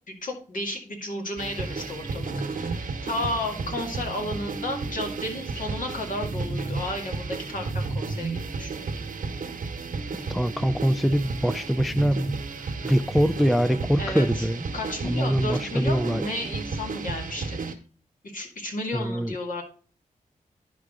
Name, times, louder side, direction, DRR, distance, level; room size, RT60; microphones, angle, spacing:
voice 1, 0.1-8.7 14.0-14.5 14.7-17.6 18.3-19.6, left 1 dB, 65° left, 2.1 m, -33 dB
sound 1, 1.4-17.7, right 4 dB, 65° right, 1.0 m, -33 dB
voice 2, 10.3-12.4 12.6-14.7 15.0-16.2 18.9-19.4, equal, ahead, 0.3 m, -24 dB
11.0 x 4.8 x 3.7 m
wide cardioid pair, 100°, 15 cm